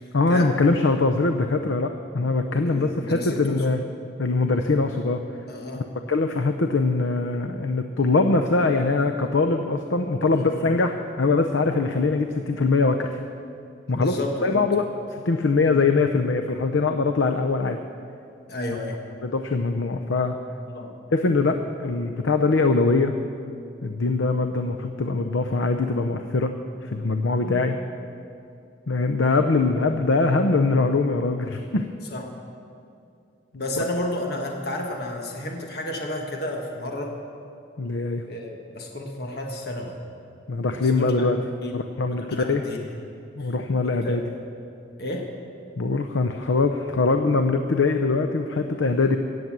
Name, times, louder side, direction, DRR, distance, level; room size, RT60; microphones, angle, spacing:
voice 1, 0.1-3.8 4.2-5.2 5.9-13.2 13.9-14.1 14.4-17.8 19.2-20.3 21.1-23.1 23.8-26.5 26.8-27.8 28.9-31.9 37.8-38.2 40.5-41.4 41.7-42.6 43.4-44.2 45.8-49.2, left 3 dB, 85° left, 7 dB, 0.7 m, -22 dB
voice 2, 2.6-3.6 5.5-5.9 10.2-10.7 13.9-14.7 15.6-15.8 18.5-19.0 20.7-20.9 21.3-21.5 27.4-27.7 32.1-32.2 33.5-37.2 38.3-40.0 40.8-42.9 43.4-43.5 44.0-44.2 45.0-45.3, left 1 dB, 55° left, 1 dB, 1.3 m, -32 dB
17.5 x 8.0 x 7.4 m, 2.5 s
head